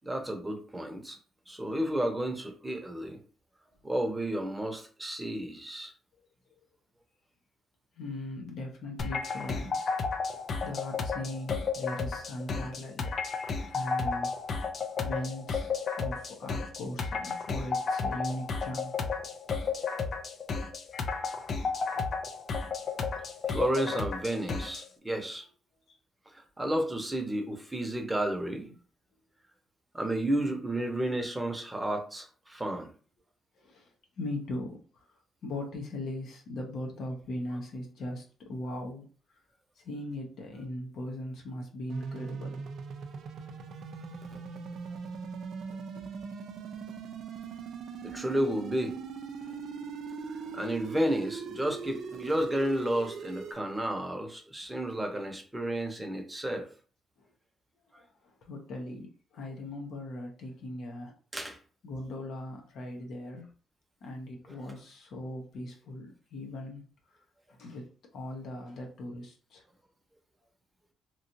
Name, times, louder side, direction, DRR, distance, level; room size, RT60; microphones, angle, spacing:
voice 1, 0.0-1.2 1.5-3.2 3.8-5.9 23.5-25.5 26.3-28.7 29.9-32.9 48.0-48.9 50.3-56.7 57.9-58.0 61.3-61.6 64.5-64.6, right 1 dB, 10° right, 3 dB, 0.8 m, -32 dB
voice 2, 8.0-13.1 13.7-14.7 15.0-18.9 21.9-22.0 25.9-26.0 28.6-28.7 30.3-30.5 33.6-35.0 35.4-39.1 39.8-42.6 45.9-46.1 47.5-47.6 49.4-49.5 50.4-50.6 54.7-54.9 58.2-61.1 61.8-63.5 64.0-66.8 67.5-67.9 68.1-69.6, left 1 dB, 70° left, 1 dB, 0.9 m, -39 dB
sound 1, 9.0-24.9, left 5 dB, 50° left, 0.5 m, -33 dB
sound 2, 41.9-53.5, right 5 dB, 75° right, 0.4 m, -40 dB
3.0 x 2.6 x 2.8 m, 0.40 s
cardioid pair, 90°, 0 cm